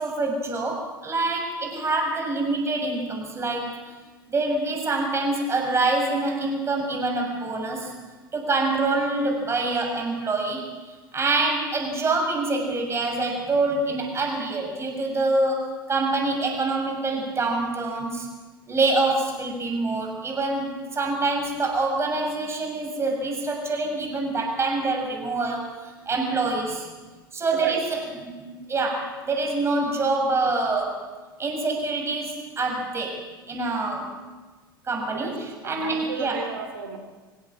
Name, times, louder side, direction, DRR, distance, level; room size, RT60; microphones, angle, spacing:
voice 1, 0.0-3.8 4.3-7.9 8.3-10.7 11.1-18.3 18.7-26.9 27.3-31.1 31.4-33.2 33.5-34.1 34.9-36.5, right 3 dB, 20° right, 1 dB, 6.9 m, -26 dB
voice 2, 35.6-37.0, right 6 dB, 70° right, 7 dB, 3.2 m, -34 dB
25.0 x 17.0 x 7.6 m, 1.3 s
figure-of-eight pair, 75°, 12 cm